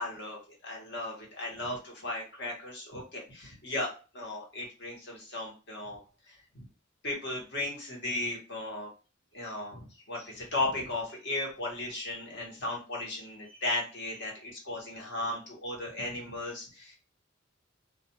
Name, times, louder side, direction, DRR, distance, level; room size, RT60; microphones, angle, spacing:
voice 1, 0.0-6.0 6.3-6.6 7.0-8.9 9.3-17.0, left 2 dB, 60° left, -1 dB, 1.1 m, -36 dB
2.4 x 2.4 x 2.8 m, 0.33 s
head